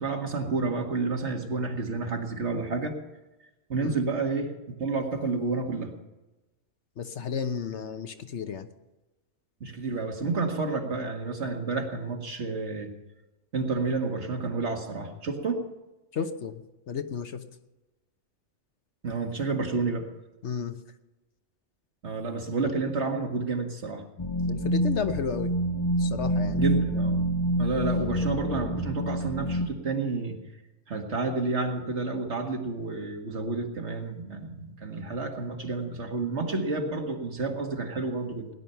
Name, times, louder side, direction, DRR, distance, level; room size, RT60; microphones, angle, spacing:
voice 1, 0.0-3.0 3.7-5.9 9.6-12.9 13.5-15.6 19.0-20.1 22.0-24.0 26.6-27.2 27.6-30.4 30.9-38.5, right 3 dB, 60° right, 3 dB, 2.1 m, -30 dB
voice 2, 7.0-8.7 16.1-17.4 20.4-20.7 24.5-25.5 26.0-26.6, left 6 dB, 65° left, 8 dB, 1.2 m, -32 dB
sound 1, 24.2-29.7, equal, 30° left, 0.7 m, -27 dB
18.0 x 11.0 x 5.7 m, 1.0 s
omnidirectional pair, 1.3 m